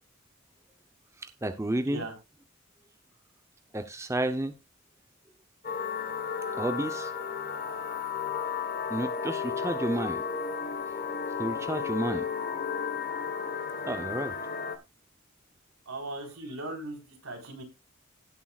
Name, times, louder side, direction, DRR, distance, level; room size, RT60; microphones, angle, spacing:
voice 1, 1.2-2.0 3.7-4.5 6.6-7.1 8.9-10.2 11.4-12.3 13.9-14.3, right 1 dB, 15° right, 0.7 m, -31 dB
sound 1, 5.6-14.8, left 6 dB, 40° left, 1.3 m, -33 dB
voice 2, 15.9-17.6, right 2 dB, 75° right, 4.2 m, -38 dB
17.5 x 7.3 x 2.4 m
head